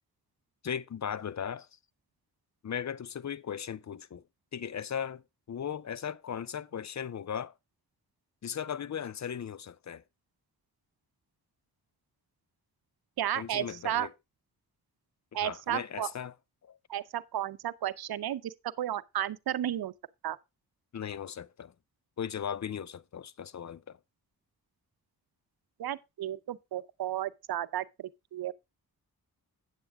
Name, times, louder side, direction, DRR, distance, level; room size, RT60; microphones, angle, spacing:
voice 1, 0.6-1.7 2.6-4.2 4.5-7.5 8.4-10.0 13.3-14.1 15.3-16.3 16.6-16.8 20.9-21.7 22.2-24.0, left 8 dB, 45° left, 0.6 m, -37 dB
voice 2, 13.2-14.1 15.3-16.1 16.9-19.9 20.2-20.4 25.8-28.5, right 12 dB, 75° right, 0.7 m, -33 dB
8.7 x 8.2 x 3.4 m
cardioid pair, 55°, 38 cm